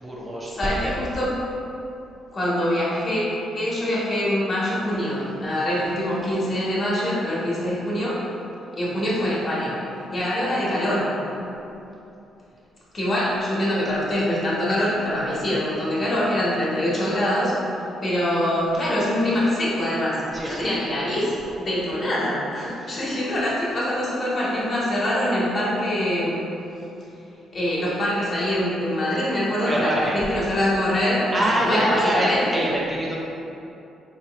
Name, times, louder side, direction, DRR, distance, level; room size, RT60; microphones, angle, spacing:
voice 1, 0.0-0.9 20.3-20.7 22.8-23.0 29.7-30.2 31.3-33.2, right 1 dB, 25° right, -4 dB, 0.6 m, -25 dB
voice 2, 0.5-1.3 2.3-8.2 8.8-9.7 10.1-11.1 12.9-17.6 18.0-26.5 27.5-31.3 31.6-32.7, left 1 dB, 45° left, -7 dB, 1.2 m, -24 dB
3.7 x 3.0 x 3.0 m, 2.8 s
cardioid pair, 90°, 0 cm